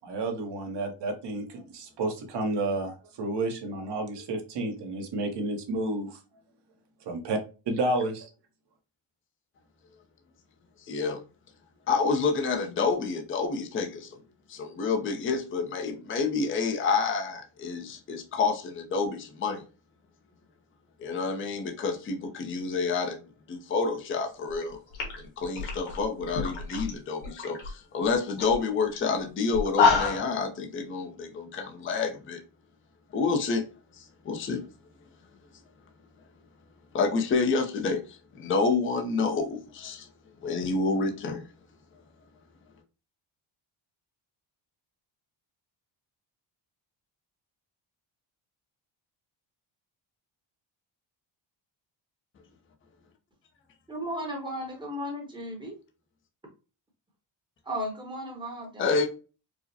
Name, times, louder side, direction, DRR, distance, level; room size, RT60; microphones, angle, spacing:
voice 1, 0.0-6.2 7.1-7.4 7.7-8.3, right 2 dB, 55° right, 1.0 m, -31 dB
voice 2, 10.9-11.2 11.9-14.2 14.5-19.6 21.0-23.2 23.5-24.8 25.2-32.4 33.1-33.6 34.0-34.6 36.9-40.1 40.4-41.4 58.8-59.1, left 4 dB, 25° left, 0.5 m, -28 dB
sound 1, 24.5-24.6 24.9-26.9 27.2-27.7 28.0-28.1 28.4-28.6 29.0-29.1 29.5-30.3, left 5 dB, 70° left, 1.5 m, -26 dB
voice 3, 53.9-55.8 57.6-58.9, equal, 10° right, 0.9 m, -35 dB
4.8 x 2.0 x 2.6 m
wide cardioid pair, 175°, 50 cm